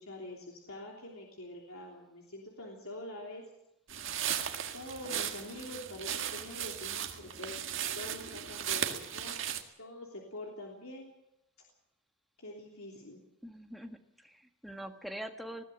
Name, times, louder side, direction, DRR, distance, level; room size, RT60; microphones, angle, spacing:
voice 1, 0.0-3.4 4.7-9.4 9.8-11.1 12.4-13.2, left 1 dB, 75° left, -1 dB, 3.3 m, -45 dB
sound 1, 3.9-9.6, right 9 dB, 60° right, 1.8 m, -36 dB
voice 2, 13.4-15.6, right 1 dB, ahead, 4 dB, 1.5 m, -44 dB
20.5 x 16.0 x 7.9 m, 0.83 s
head